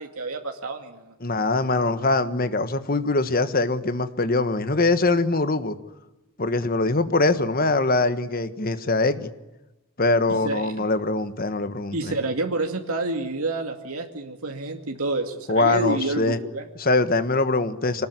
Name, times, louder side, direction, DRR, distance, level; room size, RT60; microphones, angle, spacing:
voice 1, 0.0-1.1 10.3-10.9 11.9-16.7, right 2 dB, 85° right, 4 dB, 2.3 m, -29 dB
voice 2, 1.2-5.8 6.4-9.3 10.0-12.1 15.5-16.4 16.8-18.1, left 2 dB, 40° left, 12 dB, 1.5 m, -23 dB
25.5 x 19.5 x 9.7 m, 1.0 s
head